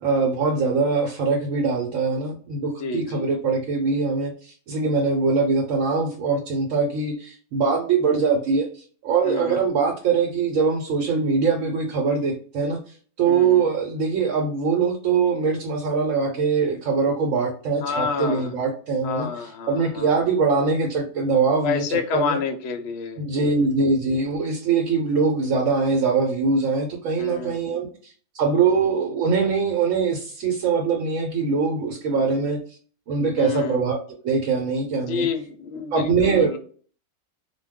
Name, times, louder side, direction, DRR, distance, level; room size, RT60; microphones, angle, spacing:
voice 1, 0.0-12.8 13.2-22.4 23.2-32.6 33.1-34.0 34.2-35.3 35.9-36.6, right 4 dB, 70° right, 1 dB, 1.0 m, -22 dB
voice 2, 2.8-3.2 9.2-9.6 13.3-13.7 17.8-18.5 19.0-20.1 21.6-23.5 27.2-27.6 33.4-33.8 35.1-36.6, left 6 dB, 65° left, 5 dB, 0.7 m, -29 dB
2.2 x 2.2 x 3.4 m, 0.43 s
omnidirectional pair, 1.5 m